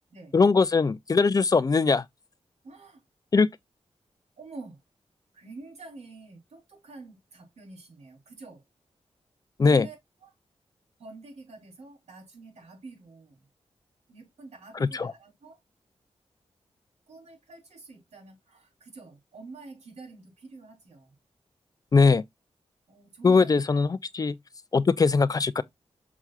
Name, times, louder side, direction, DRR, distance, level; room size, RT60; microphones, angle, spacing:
voice 1, 0.3-2.0 3.3-3.5 9.6-9.9 14.8-15.1 21.9-22.2 23.2-24.3 24.7-25.6, left 4 dB, 35° left, 0.5 m, -21 dB
voice 2, 2.6-3.0 4.4-4.8 5.3-8.6 9.6-10.0 10.2-10.3 11.0-13.5 14.1-15.6 17.1-21.2 22.9-23.5, right 3 dB, 80° right, 3.7 m, -47 dB
6.9 x 6.0 x 2.4 m
wide cardioid pair, 165°, 11 cm